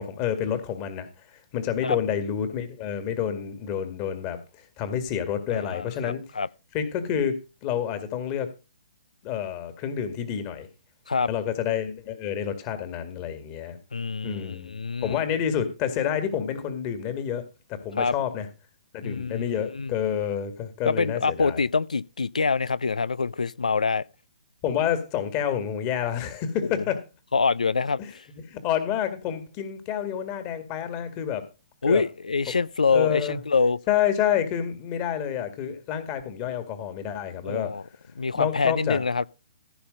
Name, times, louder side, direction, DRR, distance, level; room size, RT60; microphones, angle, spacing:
voice 1, 0.0-6.2 6.7-8.5 9.2-10.7 11.3-13.8 14.2-14.7 15.0-17.4 17.7-18.5 18.9-21.6 24.6-27.0 28.0-28.1 28.5-31.5 31.8-32.0 32.9-33.4 33.9-37.7 38.4-39.0, left 9 dB, 30° left, 2.0 m, -28 dB
voice 2, 5.5-6.5 11.1-11.3 13.9-15.2 18.0-18.1 19.0-19.9 20.9-24.0 26.7-26.8 27.3-28.3 31.8-33.8 37.4-37.8 38.2-39.3, left 4 dB, 80° left, 0.5 m, -25 dB
15.5 x 5.6 x 5.2 m
figure-of-eight pair, 130°, 4 cm